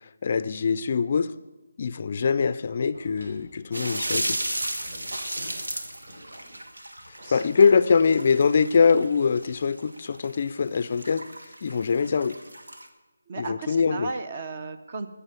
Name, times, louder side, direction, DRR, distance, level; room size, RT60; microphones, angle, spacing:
voice 1, 0.2-1.3 1.8-4.4 7.3-11.2 11.6-12.4 13.4-14.1, left 5 dB, 40° left, 15 dB, 0.4 m, -23 dB
Door, 2.9-9.5, equal, 70° right, 5.0 m, -50 dB
sound 1, 3.7-12.9, right 1 dB, 90° right, 1.6 m, -34 dB
voice 2, 13.3-15.1, right 3 dB, 35° right, 9 dB, 0.9 m, -35 dB
15.5 x 6.8 x 7.3 m, 1.2 s
figure-of-eight pair, 165°, 0 cm